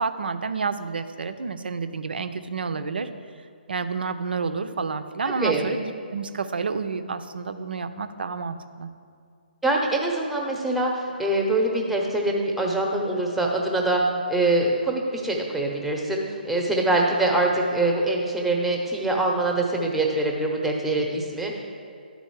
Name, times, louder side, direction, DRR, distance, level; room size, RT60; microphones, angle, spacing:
voice 1, 0.0-3.1 3.7-8.9, right 4 dB, 70° right, 10 dB, 0.5 m, -29 dB
voice 2, 5.2-5.6 9.6-14.0 14.3-21.6, right 2 dB, ahead, 0 dB, 0.8 m, -24 dB
11.5 x 4.0 x 4.6 m, 2.4 s
figure-of-eight pair, 140°, 6 cm